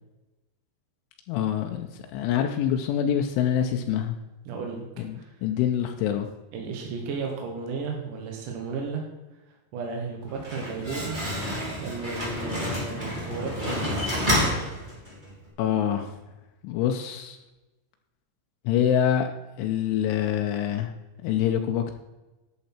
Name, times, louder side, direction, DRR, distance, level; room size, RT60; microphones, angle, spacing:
voice 1, 1.3-4.2 5.0-6.3 15.6-16.1 16.6-17.4 18.7-19.3 19.6-20.9 21.2-21.9, left 9 dB, 85° left, 5 dB, 3.1 m, -25 dB
voice 2, 4.5-4.8 5.1-5.4 6.5-9.0 9.7-11.2 11.8-14.6, right 4 dB, 70° right, 1 dB, 2.0 m, -34 dB
Slam, 10.2-15.3, equal, 15° right, 1.7 m, -29 dB
11.5 x 7.8 x 4.4 m, 1.1 s
omnidirectional pair, 5.6 m